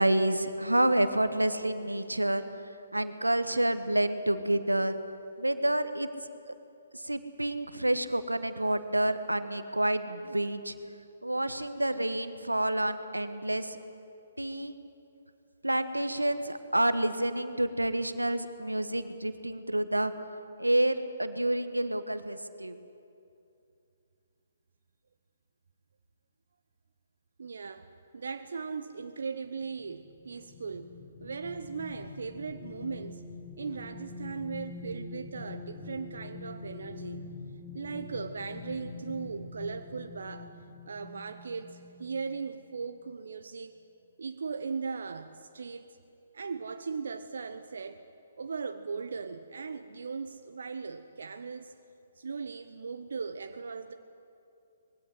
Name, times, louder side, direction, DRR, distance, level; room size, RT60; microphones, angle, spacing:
voice 1, 0.0-2.4 2.9-4.9 5.4-6.1 6.9-10.7 11.2-13.8 14.4-14.7 15.6-20.1 20.6-22.8, right 1 dB, 90° right, 11 dB, 1.3 m, -28 dB
voice 2, 27.4-27.9 28.1-30.9 31.2-33.2 33.6-37.2 37.7-40.5 40.9-43.7 44.2-45.9 46.3-48.0 48.4-51.7 52.2-53.9, right 5 dB, 65° right, 8 dB, 0.8 m, -38 dB
sound 1, 29.6-42.5 43.0-43.1, left 4 dB, 25° left, 2.0 m, -45 dB
21.0 x 16.5 x 9.6 m, 2.6 s
figure-of-eight pair, 130°, 0 cm